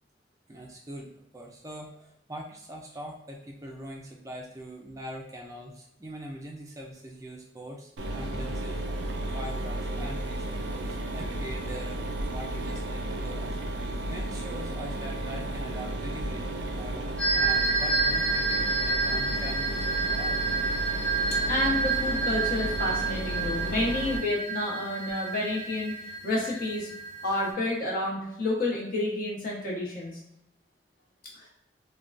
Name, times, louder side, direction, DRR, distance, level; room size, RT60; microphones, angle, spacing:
voice 1, 0.5-8.8 9.3-20.7, right 1 dB, 20° right, 0 dB, 0.3 m, -43 dB
Mechanisms, 8.0-24.2, right 1 dB, 80° right, 0.4 m, -33 dB
sound 1, 17.2-27.5, right 4 dB, 10° left, 0.7 m, -29 dB
voice 2, 21.5-25.9 26.2-26.9 27.2-30.1 31.3-31.5, left 2 dB, 50° left, -4 dB, 0.9 m, -29 dB
3.6 x 2.2 x 2.4 m, 0.81 s
head